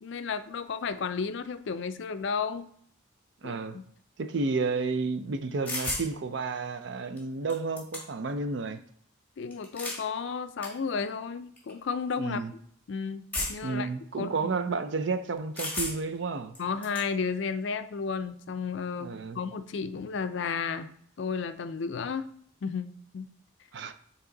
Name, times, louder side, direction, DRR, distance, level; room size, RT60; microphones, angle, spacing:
voice 1, 0.0-2.7 3.4-3.9 9.4-12.4 12.9-13.9 14.2-14.3 16.6-20.9 21.2-22.3 22.6-23.3, left 5 dB, 65° left, 0.4 m, -33 dB
voice 2, 3.4-3.8 4.2-8.8 12.2-12.5 13.6-16.5 19.0-19.4 23.7-23.9, right 4 dB, 60° right, 0.5 m, -31 dB
sound 1, 5.7-6.1 7.2-7.3 7.5-8.3 9.5-10.0 10.6-10.7 11.6-11.7 13.3-13.8 15.6-16.2 16.5-17.1, left 2 dB, 10° left, 1.4 m, -34 dB
8.3 x 3.0 x 3.9 m
head